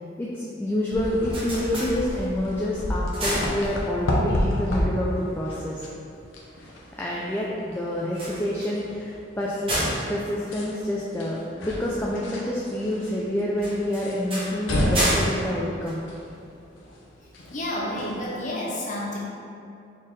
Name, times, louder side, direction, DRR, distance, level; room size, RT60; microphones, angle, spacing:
voice 1, 0.2-5.8 7.0-9.8 10.1-16.0, left 1 dB, 10° left, -5 dB, 0.3 m, -28 dB
sound 1, 0.9-18.2, equal, 85° left, 0.7 m, -32 dB
sound 2, 1.1-2.5 2.9-4.2 8.0-11.5 13.6-16.6, equal, 30° right, 1.1 m, -31 dB
voice 2, 17.5-19.2, left 1 dB, 40° left, -4 dB, 0.8 m, -30 dB
4.3 x 3.7 x 3.1 m, 2.6 s
head